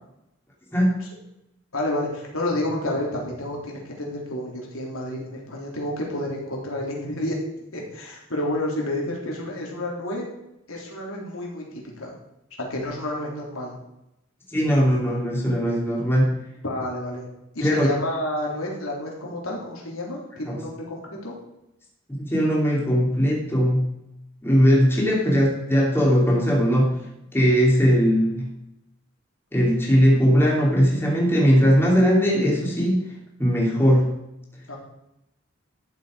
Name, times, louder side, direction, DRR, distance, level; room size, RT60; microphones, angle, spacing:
voice 1, 1.7-7.4 7.7-10.3 10.7-12.1 12.6-13.8 16.6-17.2 17.6-21.3 34.7-34.8, left 1 dB, 90° left, -2 dB, 3.6 m, -30 dB
voice 2, 14.5-16.4 17.6-17.9 20.5-20.6 22.1-23.9 24.4-27.0 27.3-28.5 29.5-33.0 33.4-34.2, equal, 10° left, -3 dB, 2.8 m, -19 dB
12.5 x 7.7 x 5.1 m, 0.86 s
head